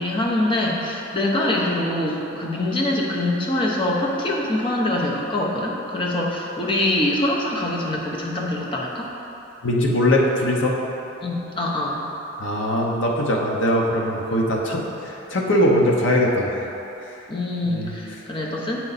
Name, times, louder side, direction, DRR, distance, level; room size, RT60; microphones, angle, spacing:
voice 1, 0.0-9.1 11.2-12.1 17.3-18.8, left 1 dB, 25° left, -3 dB, 0.8 m, -24 dB
voice 2, 9.6-10.8 12.4-16.7 17.7-18.0, left 1 dB, 70° left, -1 dB, 0.9 m, -21 dB
8.0 x 4.5 x 4.1 m, 2.9 s
head